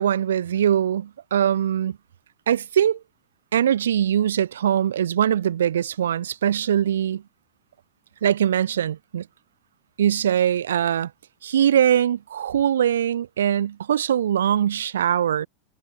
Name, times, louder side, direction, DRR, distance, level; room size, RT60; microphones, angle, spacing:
voice 1, 0.0-2.0 2.5-3.0 3.5-7.2 8.2-9.3 10.0-11.1 11.4-15.5, right 9 dB, 75° right, 1.8 m, -22 dB
figure-of-eight pair, 90°, 0 cm